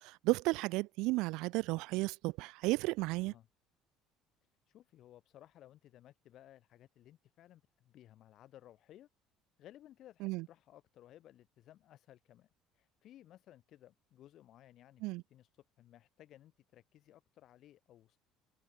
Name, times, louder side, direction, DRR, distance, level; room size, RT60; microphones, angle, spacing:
voice 1, 0.0-3.3 10.2-10.4 15.0-15.2, right 22 dB, 75° right, 0.7 m, -33 dB
voice 2, 4.7-9.1 9.6-12.5 12.7-15.0 15.3-15.5 15.8-18.2, left 12 dB, 55° left, 3.0 m, -59 dB
cardioid pair, 130°, 0 cm